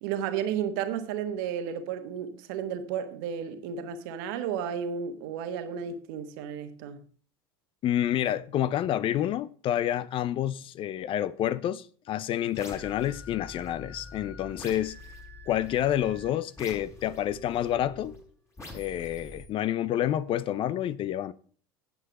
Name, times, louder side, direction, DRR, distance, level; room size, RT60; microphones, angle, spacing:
voice 1, 0.0-7.0, right 8 dB, 65° right, 1.4 m, -33 dB
voice 2, 7.8-15.0 15.5-18.2 18.7-21.3, left 11 dB, 45° left, 0.6 m, -28 dB
sound 1, 12.5-18.2 18.6-19.5, left 2 dB, 20° left, 5.7 m, -45 dB
9.4 x 8.0 x 5.4 m
hypercardioid pair, 80°, 12 cm